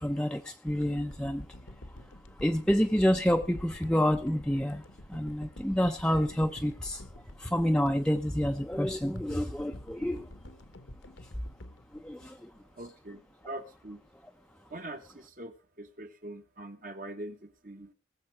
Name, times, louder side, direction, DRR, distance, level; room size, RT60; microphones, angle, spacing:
voice 1, 0.0-1.5 1.9-2.0 2.3-7.1 7.4-10.3 11.2-11.3 11.9-12.5, equal, 5° left, 4 dB, 0.6 m, -28 dB
sound 1, 0.7-12.9 13.4-13.5, left 1 dB, 85° left, 1.5 m, -48 dB
voice 2, 12.6-14.0 14.7-17.9, right 1 dB, 45° right, 7 dB, 1.3 m, -43 dB
19.5 x 7.5 x 4.7 m, 0.33 s
head